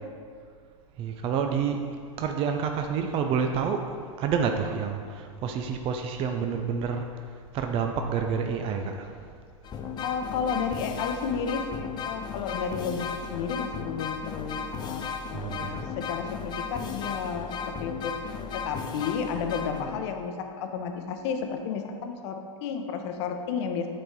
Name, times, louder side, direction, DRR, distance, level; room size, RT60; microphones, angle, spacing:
voice 1, 1.0-1.8 2.2-9.3 15.3-15.9, right 6 dB, 35° right, 5 dB, 0.5 m, -29 dB
sound 1, 9.6-20.3, left 5 dB, 25° left, 0.5 m, -35 dB
voice 2, 10.0-15.0 15.3-23.9, left 6 dB, 55° left, 5 dB, 0.8 m, -32 dB
8.7 x 4.1 x 3.7 m, 2.2 s
hypercardioid pair, 100°, 17 cm